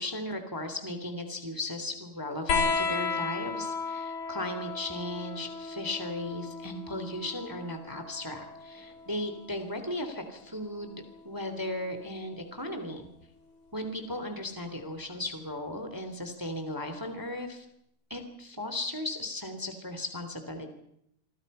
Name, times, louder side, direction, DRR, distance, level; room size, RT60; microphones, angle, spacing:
voice 1, 0.0-13.1 13.7-17.7 18.1-20.7, left 1 dB, 5° right, 7 dB, 2.7 m, -36 dB
sound 1, 2.5-9.6 10.9-11.8 13.1-13.2, left 5 dB, 80° left, 4.7 m, -34 dB
28.0 x 24.0 x 5.7 m, 0.75 s
omnidirectional pair, 3.9 m